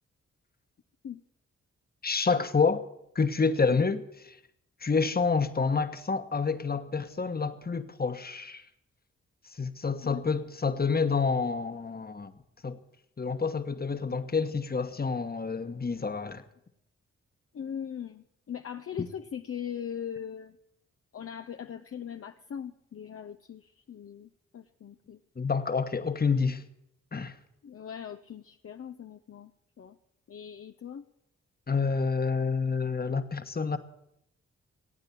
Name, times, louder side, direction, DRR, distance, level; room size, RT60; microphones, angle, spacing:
voice 1, 2.0-2.8 3.1-4.4 4.8-8.6 9.6-12.3 12.6-12.8 13.2-16.4 25.4-26.6 27.1-27.3 31.7-33.8, left 5 dB, 30° left, 1.3 m, -28 dB
voice 2, 17.5-20.6 21.1-25.2 27.6-29.5 29.8-30.0 30.3-31.0, left 8 dB, 50° left, 0.7 m, -40 dB
16.5 x 8.9 x 8.5 m
supercardioid pair, 50°, 29 cm